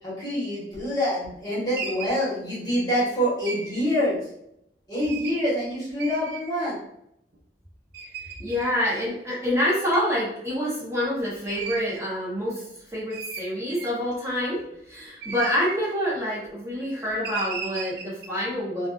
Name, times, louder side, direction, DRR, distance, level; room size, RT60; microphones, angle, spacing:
voice 1, 0.0-4.2 4.9-6.8, equal, 20° left, -8 dB, 1.1 m, -26 dB
sound 1, 0.7-0.8 1.2-2.2 3.4-3.8 5.0-5.4 6.0-6.7 7.3-7.4 7.9-8.7 9.9-10.1 11.5-12.0 12.6-12.7 13.1-14.1 15.0-15.8 17.2-18.3, right 5 dB, 60° right, 0.5 m, -36 dB
voice 2, 8.0-12.6 12.9-14.6 14.9-18.9, equal, 15° right, -8 dB, 0.7 m, -27 dB
2.4 x 2.4 x 2.3 m, 0.76 s
head